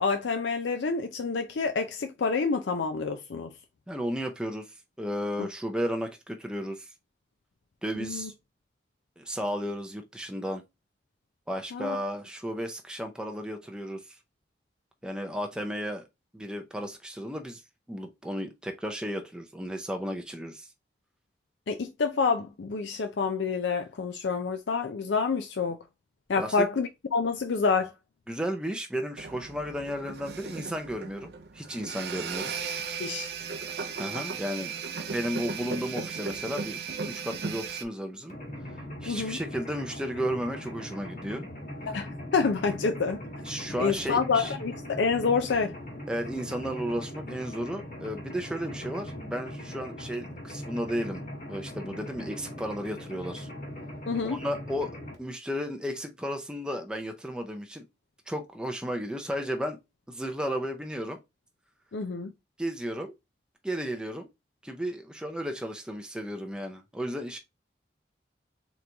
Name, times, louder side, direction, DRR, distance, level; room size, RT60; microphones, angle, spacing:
voice 1, 0.0-3.5 5.4-5.5 8.0-8.3 11.7-12.0 21.7-25.8 26.3-27.9 33.0-33.3 39.1-39.4 41.9-43.2 43.8-45.7 54.1-54.4 61.9-62.3, left 5 dB, 85° left, 0.5 m, -28 dB
voice 2, 3.9-6.9 7.8-8.3 9.2-10.6 11.5-14.2 15.0-16.0 16.3-17.6 17.9-20.7 26.4-26.7 28.3-32.5 34.0-36.8 37.1-38.3 39.0-41.5 43.4-44.5 46.1-51.2 51.5-53.5 54.2-54.9 55.2-57.8 58.3-59.8 60.1-61.2 62.6-63.1 63.6-64.3 64.6-67.4, equal, 5° right, 0.5 m, -34 dB
sound 1, 29.2-37.8, right 5 dB, 60° right, 0.5 m, -36 dB
Mechanisms, 38.3-55.1, left 1 dB, 45° left, 1.5 m, -40 dB
3.9 x 3.0 x 3.4 m
head